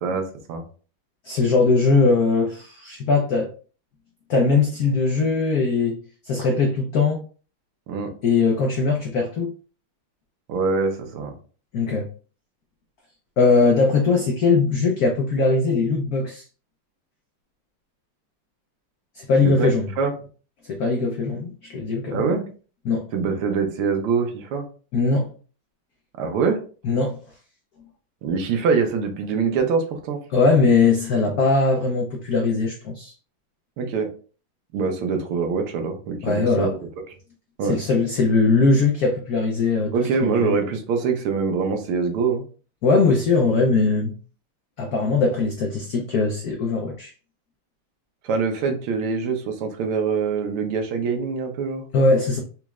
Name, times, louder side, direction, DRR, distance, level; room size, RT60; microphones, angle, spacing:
voice 1, 0.0-0.6 7.9-8.1 10.5-11.3 19.4-19.7 20.0-20.1 22.1-22.4 23.1-24.7 26.2-26.6 28.2-30.2 33.8-34.1 34.7-36.8 37.6-37.8 39.9-42.4 48.2-51.8, right 5 dB, 85° right, 4 dB, 1.7 m, -24 dB
voice 2, 1.2-3.5 4.3-6.0 6.2-7.2 8.2-9.5 11.7-12.1 13.4-16.4 19.1-19.9 20.7-22.2 22.8-23.1 24.9-25.3 26.8-27.2 30.3-33.1 36.2-36.7 37.6-39.9 40.2-40.6 42.8-44.1 44.8-47.1 51.9-52.4, left 4 dB, 85° left, 1 dB, 0.8 m, -20 dB
4.3 x 3.0 x 2.3 m, 0.39 s
omnidirectional pair, 2.3 m